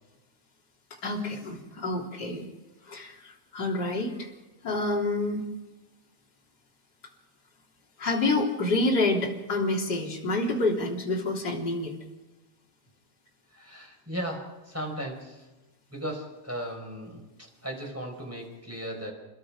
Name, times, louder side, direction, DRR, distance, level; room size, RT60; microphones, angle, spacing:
voice 1, 1.0-2.5 2.9-4.3 4.6-5.5 8.0-11.9, left 2 dB, 25° left, -1 dB, 3.1 m, -28 dB
voice 2, 13.5-15.5 15.9-19.1, right 1 dB, 5° right, 2 dB, 4.5 m, -36 dB
28.5 x 21.5 x 5.1 m, 1.1 s
omnidirectional pair, 5.8 m